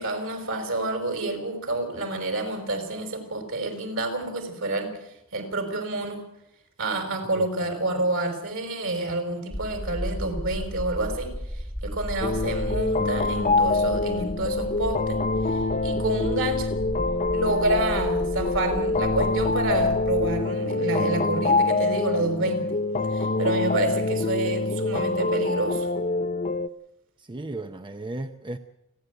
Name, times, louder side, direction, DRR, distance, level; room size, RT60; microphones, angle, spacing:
voice 1, 0.0-4.9 5.3-6.2 6.8-11.3 11.8-15.2 15.8-16.7 17.3-22.7 23.1-25.9, right 2 dB, 65° right, 4.9 m, -28 dB
voice 2, 7.3-7.7 27.2-28.6, right 2 dB, 20° right, 0.7 m, -35 dB
sound 1, 9.5-20.4, equal, 5° right, 1.2 m, -35 dB
sound 2, 12.2-26.7, left 3 dB, 35° left, 0.7 m, -25 dB
30.0 x 11.0 x 8.1 m
head